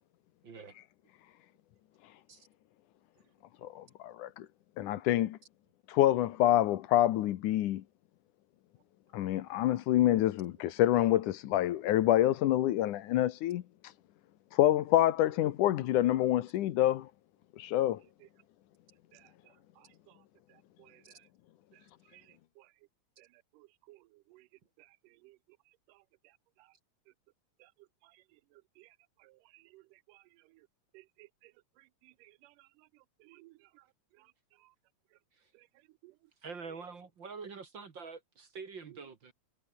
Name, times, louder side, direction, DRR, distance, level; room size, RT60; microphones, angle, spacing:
voice 1, 0.4-0.7 2.3-2.5 36.4-39.3, right 5 dB, 40° right, 2.2 m, -45 dB
voice 2, 3.6-4.5 4.8-5.4 5.9-7.8 9.1-13.6 14.5-17.1 17.6-18.0, left 13 dB, 75° left, 2.5 m, -27 dB
voice 3, 23.6-24.0 24.3-24.4 24.8-24.9 25.2-25.4 27.6-27.7 28.8-28.9 29.2-29.8 30.1-30.2 30.9-31.5 32.0-32.5 33.2-33.5 36.0-36.1, right 19 dB, 85° right, 2.2 m, -58 dB
omnidirectional pair, 3.7 m